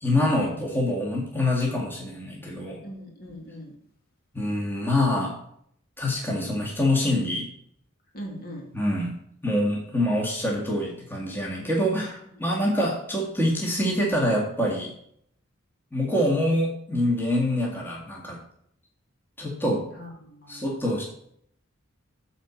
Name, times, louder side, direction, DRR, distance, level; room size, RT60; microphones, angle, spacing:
voice 1, 0.0-2.8 4.3-5.4 6.0-7.5 8.7-9.2 9.4-14.9 15.9-18.4 19.4-19.9 20.5-21.0, left 1 dB, 10° left, -3 dB, 1.9 m, -25 dB
voice 2, 2.8-3.7 8.1-8.7 12.5-12.7 20.0-20.6, equal, 45° left, 0 dB, 2.4 m, -40 dB
9.1 x 4.5 x 7.1 m, 0.68 s
head